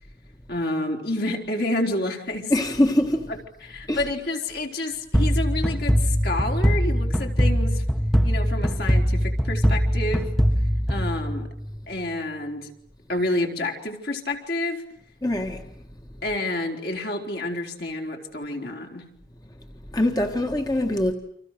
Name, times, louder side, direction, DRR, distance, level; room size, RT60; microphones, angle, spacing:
voice 1, 0.5-2.5 3.6-7.8 8.2-10.3 10.9-11.5 11.9-12.7 13.1-14.8 16.2-19.1, left 2 dB, 65° left, 4.4 m, -29 dB
voice 2, 2.5-3.3 3.9-4.0 15.2-15.7 19.9-21.1, left 1 dB, 20° left, 1.6 m, -23 dB
sound 1, 5.1-11.8, equal, ahead, 1.1 m, -22 dB
30.0 x 26.0 x 6.7 m
head